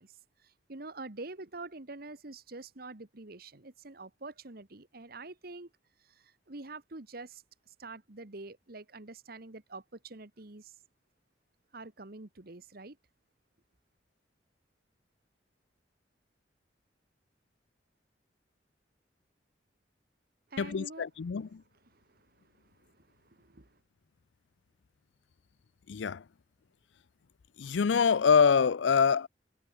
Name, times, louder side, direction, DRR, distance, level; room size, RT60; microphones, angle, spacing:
voice 1, 0.0-5.7 6.0-10.7 11.7-13.0 20.5-21.1 21.9-23.8, right 3 dB, 55° right, 1.6 m, -46 dB
voice 2, 20.6-21.6 25.9-26.2 27.6-29.3, left 6 dB, 85° left, 0.5 m, -25 dB
head